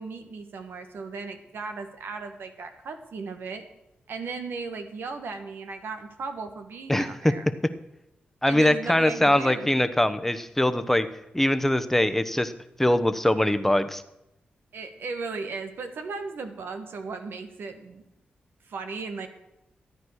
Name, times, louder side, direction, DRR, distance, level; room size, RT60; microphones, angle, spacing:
voice 1, 0.0-3.6 4.1-7.5 8.5-9.7 14.7-18.0 18.7-19.3, right 4 dB, 80° right, 7 dB, 1.4 m, -36 dB
voice 2, 8.4-11.1 11.3-12.5 12.8-14.0, left 1 dB, 10° left, 10 dB, 1.0 m, -22 dB
13.5 x 9.2 x 6.5 m, 0.87 s
cardioid pair, 65°, 4 cm